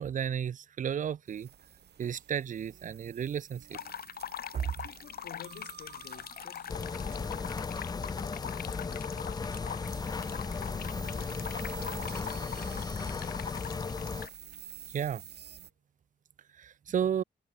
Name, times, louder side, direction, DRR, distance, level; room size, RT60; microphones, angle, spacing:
voice 1, 0.0-1.5 2.0-3.8 4.5-4.7 14.9-15.2 16.6-17.2, right 8 dB, 45° right, 0.6 m, -33 dB
sound 1, 1.3-15.7, right 9 dB, 60° right, 2.8 m, -50 dB
sound 2, 3.7-14.3, left 9 dB, 55° left, 0.8 m, -43 dB
voice 2, 4.8-9.3 11.0-13.8, left 9 dB, 70° left, 6.8 m, -54 dB
sound 3, 6.7-14.3, left 4 dB, 20° left, 0.4 m, -36 dB
wide cardioid pair, 150°, 19 cm